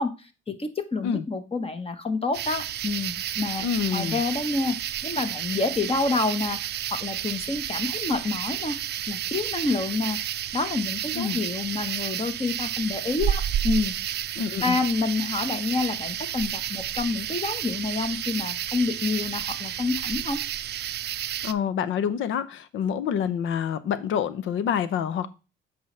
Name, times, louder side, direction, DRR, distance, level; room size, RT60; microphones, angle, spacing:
voice 1, 0.0-3.6 3.9-4.8 5.0-6.6 6.9-8.8 9.1-10.2 10.5-14.2 14.6-20.4, left 3 dB, 30° left, 1.2 m, -28 dB
sound 1, 2.3-21.5, right 11 dB, 55° right, 0.5 m, -31 dB
voice 2, 3.6-4.2 11.1-11.4 14.4-14.8 21.4-25.3, left 8 dB, 80° left, 0.8 m, -27 dB
7.9 x 5.3 x 3.3 m
cardioid pair, 90°, 20 cm